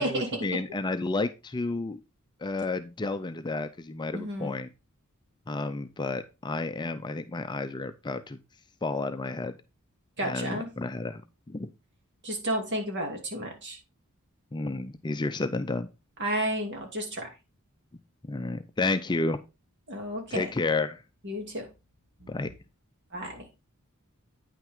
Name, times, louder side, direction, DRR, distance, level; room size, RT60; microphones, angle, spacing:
voice 1, 0.0-2.0 2.4-4.7 5.5-8.4 8.8-9.5 10.2-11.2 11.5-11.7 14.5-15.9 18.3-19.4 20.3-21.0 22.3-22.5, left 3 dB, 20° left, 9 dB, 0.5 m, -31 dB
voice 2, 4.1-4.5 10.2-10.7 12.2-13.8 16.2-17.3 19.9-20.5 21.2-21.6 22.2-22.5 23.1-23.4, equal, 55° right, 2 dB, 2.6 m, -32 dB
9.2 x 5.8 x 3.6 m, 0.27 s
head